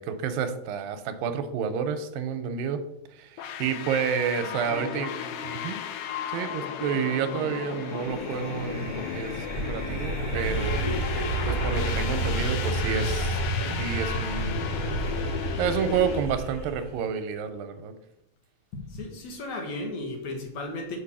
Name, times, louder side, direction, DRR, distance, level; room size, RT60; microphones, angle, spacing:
voice 1, 0.0-2.9 3.1-5.1 5.4-5.8 6.3-10.9 11.4-13.4 13.8-14.8 15.6-17.9, right 7 dB, 85° right, 9 dB, 2.4 m, -30 dB
sound 1, 3.4-16.2, left 8 dB, 85° left, 2.6 m, -35 dB
voice 2, 4.4-5.3 18.7-21.0, left 2 dB, 60° left, 1 dB, 2.5 m, -36 dB
sound 2, 7.7-16.9, right 1 dB, 15° left, 2.5 m, -30 dB
6.4 x 5.4 x 7.1 m, 0.81 s
omnidirectional pair, 4.2 m